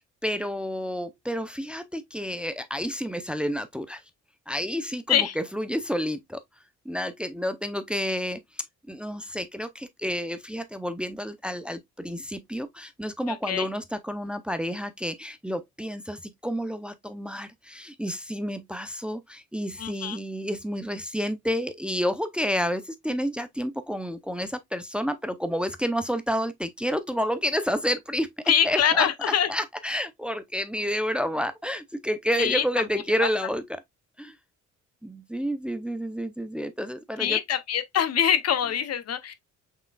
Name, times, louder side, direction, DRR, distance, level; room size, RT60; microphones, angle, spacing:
voice 1, 0.2-4.0 4.5-6.4 6.8-29.1 29.5-33.8 34.2-34.4 35.0-37.4, equal, 5° right, 0.6 m, -30 dB
voice 2, 13.3-13.7 19.8-20.2 28.5-29.5 32.4-32.6 33.2-33.3 37.2-39.3, left 9 dB, 55° left, 0.7 m, -24 dB
5.6 x 3.7 x 2.3 m
cardioid pair, 90°, 30 cm